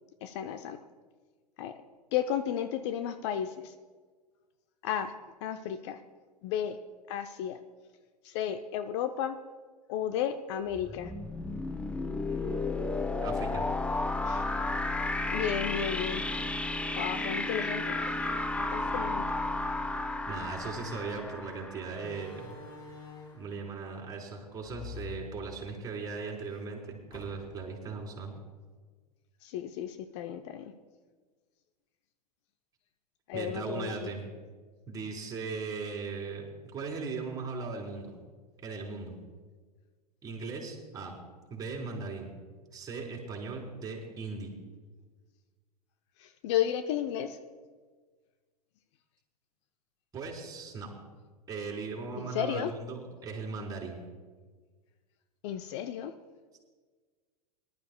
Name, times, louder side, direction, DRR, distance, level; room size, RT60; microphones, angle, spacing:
voice 1, 0.2-0.8 1.6-1.8 2.1-3.7 4.8-5.1 5.4-6.0 6.4-6.8 7.1-7.6 8.2-9.4 9.9-11.1 14.3-14.4 15.3-16.2 17.0-18.1 18.6-19.2 29.4-30.7 33.3-34.1 46.2-47.4 52.3-52.7 55.4-56.1, left 9 dB, 45° left, 8 dB, 0.7 m, -33 dB
sound 1, 10.7-22.4, left 2 dB, 5° left, 0.6 m, -33 dB
voice 2, 12.2-13.6 18.8-18.9 20.3-22.6 23.3-28.3 33.3-34.3 34.9-36.5 36.7-38.2 38.6-39.1 40.2-41.2 41.5-42.3 42.7-44.6 50.1-50.9 51.5-54.0, right 4 dB, 20° right, -2 dB, 3.9 m, -38 dB
Slam, 20.9-21.1 22.0-23.6 24.6-26.0 26.4-26.5 27.1-27.7, left 4 dB, 20° left, 2.9 m, -47 dB
23.5 x 12.0 x 2.3 m, 1.5 s
figure-of-eight pair, 90°, 20 cm